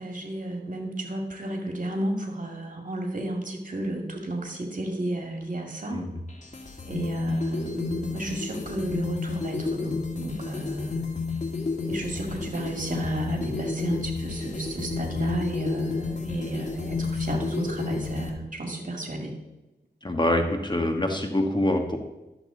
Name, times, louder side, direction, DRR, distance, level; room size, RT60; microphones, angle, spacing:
voice 1, 0.0-6.0 6.8-11.0 11.9-19.3, right 1 dB, 45° right, 2 dB, 2.3 m, -32 dB
sound 1, 6.3-18.3, left 4 dB, 40° left, 2.1 m, -31 dB
voice 2, 20.0-22.0, left 1 dB, 25° left, 3 dB, 1.5 m, -25 dB
12.0 x 7.2 x 3.9 m, 1.0 s
cardioid pair, 45°, 18 cm